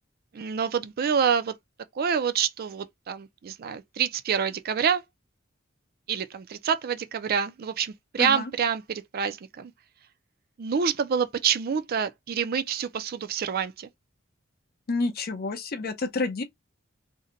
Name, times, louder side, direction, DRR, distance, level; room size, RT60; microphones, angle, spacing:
voice 1, 0.3-1.5 1.9-5.0 6.1-9.7 10.6-13.9, right 7 dB, 50° right, 0.4 m, -27 dB
voice 2, 8.2-8.5 14.9-16.4, left 3 dB, 50° left, 0.6 m, -29 dB
2.7 x 2.2 x 3.7 m
head